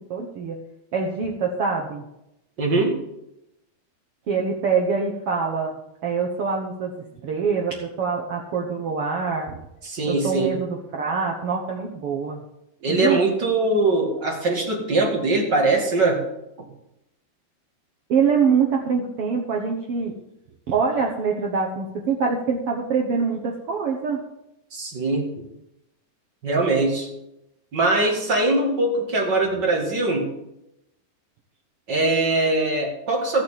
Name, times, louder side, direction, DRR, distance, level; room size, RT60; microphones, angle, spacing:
voice 1, 0.1-0.6 0.9-2.0 4.3-6.9 7.2-9.6 10.1-12.4 12.9-13.2 18.1-20.1 20.7-24.2, right 5 dB, 70° right, 0 dB, 1.4 m, -24 dB
voice 2, 2.6-2.9 9.8-10.5 12.8-16.2 24.7-25.3 26.4-27.1 27.7-30.3 31.9-33.4, right 2 dB, 35° right, 0 dB, 2.1 m, -22 dB
15.5 x 6.6 x 7.3 m, 0.87 s
omnidirectional pair, 4.2 m